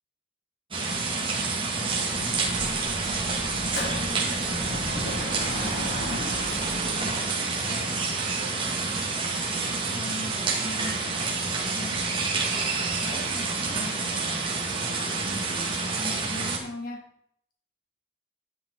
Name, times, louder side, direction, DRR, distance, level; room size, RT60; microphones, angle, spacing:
sound 1, 0.7-16.6, right 4 dB, 30° right, 2.2 m, -28 dB
voice 1, 1.6-15.1 15.4-17.1, left 1 dB, 50° left, 0 dB, 3.0 m, -42 dB
Dog / Motorcycle, 2.1-7.0, left 1 dB, 85° left, 2.9 m, -36 dB
Percussion, 5.6-6.3 6.6-8.3 8.6-9.3 9.6-10.1 10.6-12.2 12.6-13.2, equal, ahead, 4.5 m, -49 dB
11.0 x 10.5 x 4.2 m, 0.69 s
head